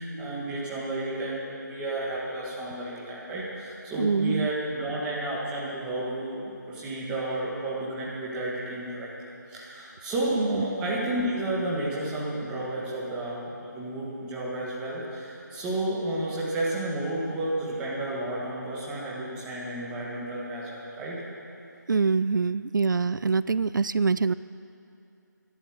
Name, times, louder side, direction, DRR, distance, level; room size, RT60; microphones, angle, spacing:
voice 1, 0.0-21.2, right 1 dB, 10° right, -6 dB, 1.8 m, -32 dB
voice 2, 4.0-4.5 10.4-10.6 21.9-24.3, right 4 dB, 80° right, 16 dB, 0.4 m, -24 dB
13.0 x 11.5 x 7.8 m, 2.7 s
figure-of-eight pair, 165°, 10 cm